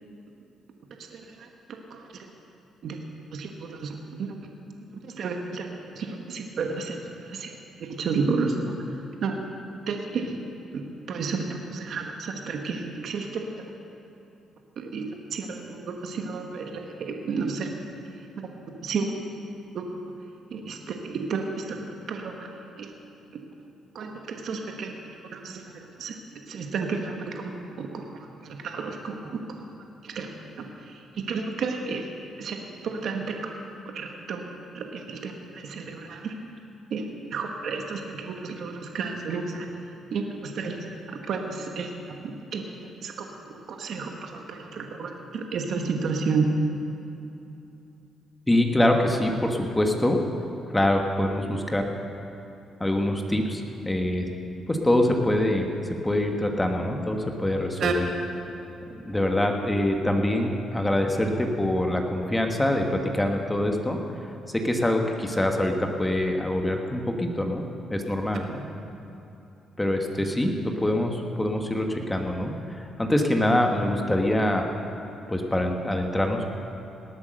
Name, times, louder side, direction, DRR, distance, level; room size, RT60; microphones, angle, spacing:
voice 1, 1.1-2.3 2.8-3.0 3.3-4.3 4.9-5.7 5.9-7.5 7.8-8.8 9.2-9.4 9.9-10.4 10.7-10.8 11.1-13.7 14.8-17.7 18.3-18.5 18.8-19.1 19.7-19.8 20.5-22.9 23.9-24.9 25.3-26.2 26.5-29.6 30.0-30.3 30.6-32.1 32.4-33.5 33.9-34.4 34.7-36.3 36.9-39.7 40.1-46.5 57.8-57.9 68.5-68.6, right 4 dB, 65° right, 3 dB, 1.3 m, -32 dB
voice 2, 48.5-50.2 50.7-51.9 52.8-54.3 54.7-55.7 56.0-58.1 58.9-64.0 64.5-67.6 67.9-68.6 69.8-74.7 75.3-76.5, left 1 dB, 10° left, 3 dB, 1.4 m, -24 dB
19.0 x 8.4 x 6.5 m, 2.8 s
cardioid pair, 90°, 0 cm